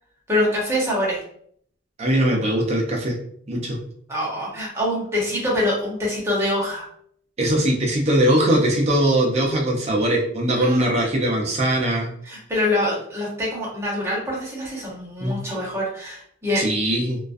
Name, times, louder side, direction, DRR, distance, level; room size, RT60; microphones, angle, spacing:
voice 1, 0.3-1.2 4.1-6.9 10.6-10.9 12.2-16.6, left 1 dB, 15° right, -6 dB, 0.9 m, -25 dB
voice 2, 2.0-3.2 3.5-3.8 7.4-12.1 15.2-15.4 16.6-17.2, right 1 dB, 35° right, 0 dB, 0.5 m, -21 dB
2.3 x 2.2 x 2.5 m, 0.64 s
head